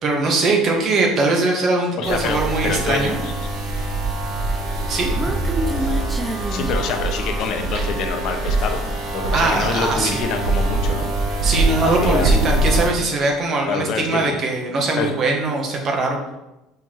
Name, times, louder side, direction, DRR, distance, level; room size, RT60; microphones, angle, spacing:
voice 1, 0.0-3.2 4.9-5.1 9.3-10.3 11.4-16.2, right 3 dB, 35° right, 1 dB, 1.4 m, -21 dB
voice 2, 2.0-3.3 6.5-11.1 11.8-12.3 13.7-14.4 15.0-15.1, left 5 dB, 50° left, 4 dB, 0.9 m, -26 dB
sound 1, 2.0-12.9, right 2 dB, 65° right, 1.9 m, -23 dB
Human voice, 4.6-7.6, right 1 dB, 10° right, 0.4 m, -28 dB
5.6 x 4.3 x 4.6 m, 0.95 s
cardioid pair, 145°, 0 cm